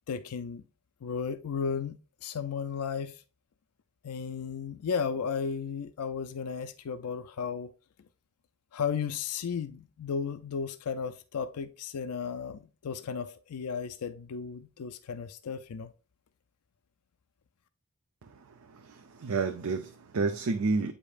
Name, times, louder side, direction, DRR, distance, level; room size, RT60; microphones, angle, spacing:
voice 1, 0.1-0.6 1.0-3.2 4.0-7.7 8.7-15.9, left 6 dB, 90° left, 0.4 m, -34 dB
voice 2, 18.2-20.9, right 4 dB, 75° right, 0.6 m, -31 dB
8.4 x 5.1 x 2.4 m
head